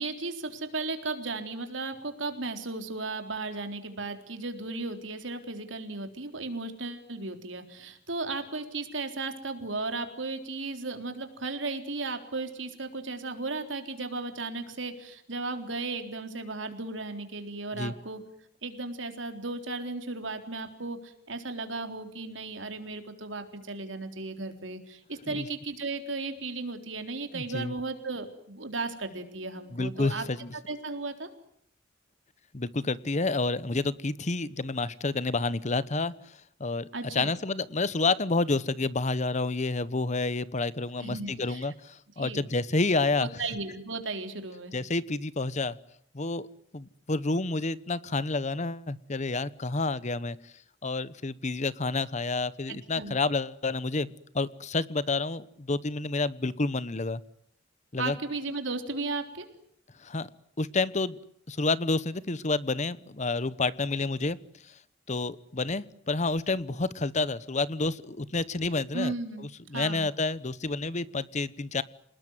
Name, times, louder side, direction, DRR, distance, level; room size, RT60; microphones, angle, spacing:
voice 1, 0.0-18.2 18.6-30.2 30.7-31.3 36.9-37.4 41.0-41.7 42.2-42.5 43.2-44.8 52.7-53.1 58.0-59.5 68.9-69.5 69.7-70.1, right 3 dB, 80° right, 6 dB, 3.8 m, -35 dB
voice 2, 27.3-27.7 29.7-30.5 32.5-43.3 44.7-45.8 46.1-46.5 46.7-50.5 50.8-57.2 57.9-58.2 60.0-60.3 60.6-61.2 61.5-64.4 64.6-64.7 65.1-69.1 69.7-71.8, left 3 dB, 40° left, 17 dB, 1.0 m, -29 dB
28.0 x 20.0 x 9.5 m, 0.72 s
head